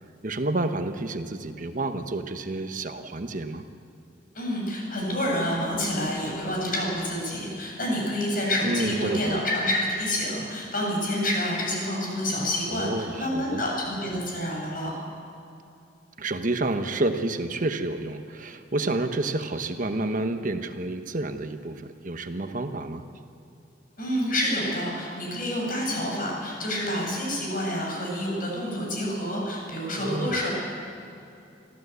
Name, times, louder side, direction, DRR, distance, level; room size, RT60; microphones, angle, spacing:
voice 1, 0.2-3.6 8.6-9.4 12.7-13.6 16.2-23.0 30.0-30.5, right 2 dB, 50° right, 7 dB, 1.1 m, -29 dB
voice 2, 4.3-14.9 24.0-30.5, left 1 dB, 50° left, -2 dB, 7.5 m, -28 dB
25.5 x 15.0 x 8.2 m, 2.7 s
head